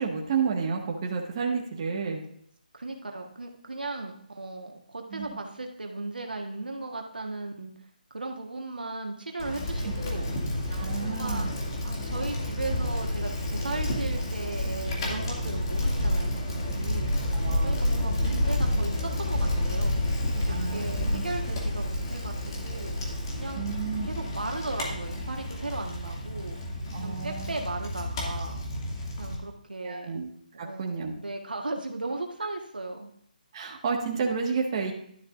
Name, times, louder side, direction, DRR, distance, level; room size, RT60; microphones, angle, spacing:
voice 1, 0.0-2.2 5.1-5.4 9.8-9.9 10.7-11.5 17.3-17.8 20.5-21.2 23.5-24.1 26.9-27.5 29.8-30.3 30.6-31.1 33.5-34.9, right 5 dB, 35° right, 0 dB, 1.7 m, -31 dB
voice 2, 2.7-7.7 8.1-10.5 11.0-11.5 11.8-17.1 17.6-20.0 20.3-23.6 24.0-26.6 27.0-28.6 29.2-30.2 30.5-33.1, right 2 dB, 85° right, 2 dB, 1.5 m, -36 dB
Bicycle, 9.4-29.4, left 1 dB, 35° left, 2.5 m, -30 dB
11.5 x 10.5 x 2.6 m, 0.67 s
figure-of-eight pair, 155°, 5 cm